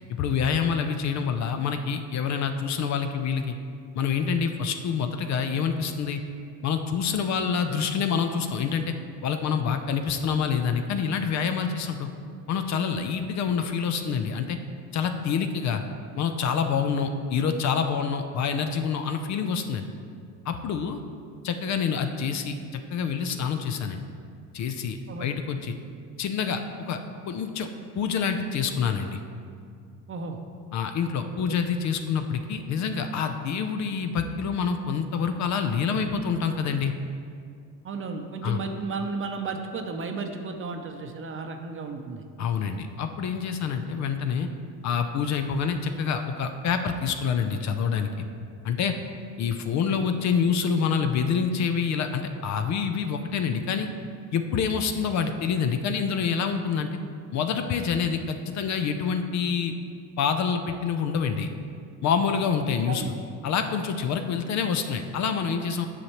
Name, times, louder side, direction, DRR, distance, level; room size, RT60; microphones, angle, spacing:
voice 1, 0.1-3.6 3.9-6.2 6.6-8.9 9.2-12.1 12.5-14.6 14.9-15.8 16.2-19.9 20.5-21.0 21.4-24.0 24.5-25.8 26.2-26.6 26.9-27.0 27.3-27.7 27.9-29.2 30.7-36.9 38.4-38.6 42.4-44.5 44.8-48.1 48.6-49.0 49.4-53.9 54.3-56.9 57.3-59.7 60.2-61.5 62.0-63.0 63.4-65.9, left 6 dB, 45° left, 7 dB, 0.5 m, -27 dB
voice 2, 30.1-30.4 31.4-31.6 37.8-42.7 49.9-50.1 62.9-63.1, right 4 dB, 30° right, 5 dB, 0.7 m, -34 dB
9.7 x 5.7 x 3.0 m, 2.3 s
supercardioid pair, 95°, 39 cm